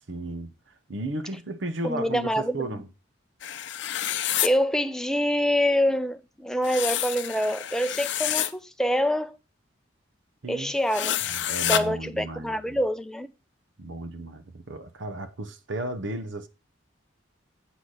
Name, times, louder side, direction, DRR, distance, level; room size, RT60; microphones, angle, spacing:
voice 1, 0.1-0.5 0.9-2.9 10.4-10.7 11.2-12.8 13.8-16.5, right 2 dB, 75° right, 0.9 m, -34 dB
voice 2, 1.8-2.6 4.4-9.4 10.5-11.2 11.6-13.3, equal, 5° left, 0.5 m, -26 dB
sound 1, 3.4-4.5 6.6-8.5 10.9-11.8, left 11 dB, 65° left, 0.6 m, -28 dB
8.1 x 3.9 x 6.4 m
head